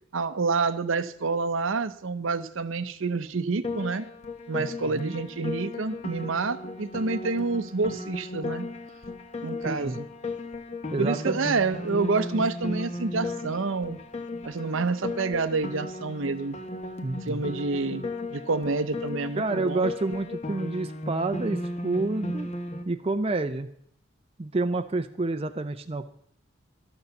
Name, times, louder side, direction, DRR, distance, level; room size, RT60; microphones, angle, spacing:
voice 1, 0.1-4.0 4.5-8.6 9.4-10.1 11.0-14.0 14.4-16.6 17.3-18.0 18.3-19.9, right 3 dB, 70° right, 13 dB, 0.7 m, -28 dB
Piano, 3.6-22.8, left 2 dB, 30° left, 1.0 m, -35 dB
voice 2, 4.6-5.2 9.7-10.0 10.9-11.5 17.0-17.4 19.4-22.5 22.9-23.7 24.4-26.1, right 3 dB, 30° right, 8 dB, 0.5 m, -29 dB
12.5 x 6.7 x 7.0 m, 0.69 s
head